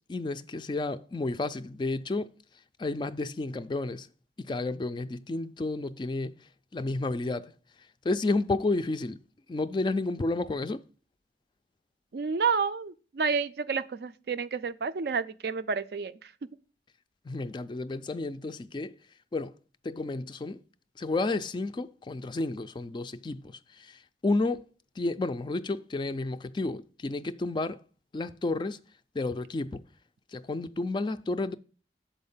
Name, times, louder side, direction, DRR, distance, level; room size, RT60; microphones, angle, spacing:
voice 1, 0.1-2.3 2.8-4.1 4.4-6.4 6.7-7.5 8.0-9.2 9.5-10.8 17.3-19.0 19.3-19.5 19.8-20.6 21.0-24.7 25.0-27.8 28.1-28.8 29.1-29.8 30.3-31.5, left 2 dB, 25° left, 0.3 m, -31 dB
voice 2, 12.1-16.1, right 5 dB, 60° right, 0.4 m, -30 dB
7.1 x 4.3 x 5.5 m
head